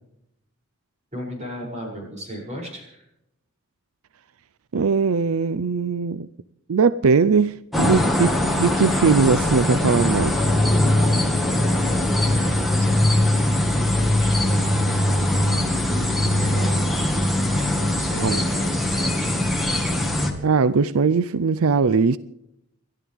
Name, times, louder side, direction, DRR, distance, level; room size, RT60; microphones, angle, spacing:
voice 1, 1.1-3.0 11.7-13.8 14.1-15.6 15.9-19.7, equal, 30° right, 7.2 m, -37 dB
voice 2, 4.7-6.3 6.7-10.5 18.1-18.4 20.4-22.2, right 5 dB, 85° right, 0.5 m, -20 dB
sound 1, 7.7-20.3, left 1 dB, ahead, 1.9 m, -21 dB
30.0 x 12.0 x 3.6 m
head